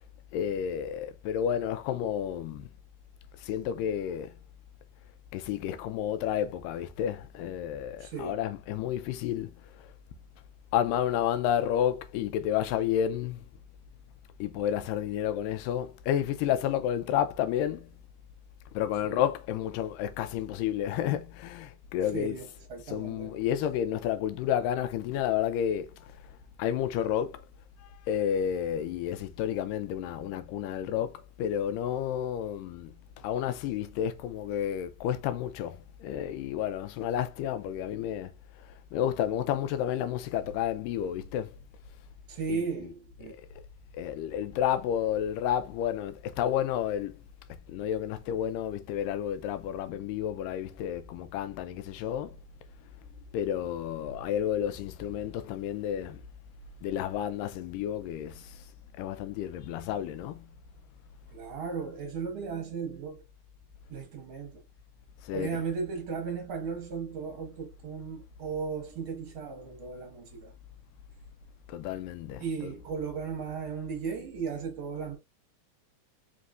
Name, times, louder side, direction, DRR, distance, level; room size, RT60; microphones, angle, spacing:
voice 1, 0.3-2.7 3.4-4.3 5.3-9.5 10.7-13.4 14.4-17.9 18.7-22.4 22.9-26.1 26.6-27.4 28.1-38.3 38.9-41.5 42.5-42.9 43.2-43.3 43.9-47.1 47.7-52.4 53.3-56.2 56.8-58.6 59.0-60.5 65.2-65.6 71.7-72.8, left 10 dB, 90° left, 2.3 m, -31 dB
voice 2, 8.0-8.4 19.0-19.2 22.1-23.4 42.3-43.3 61.3-63.2 63.9-64.6 65.3-70.5 72.4-75.2, right 6 dB, 50° right, 1.7 m, -36 dB
5.4 x 3.1 x 2.4 m
omnidirectional pair, 3.8 m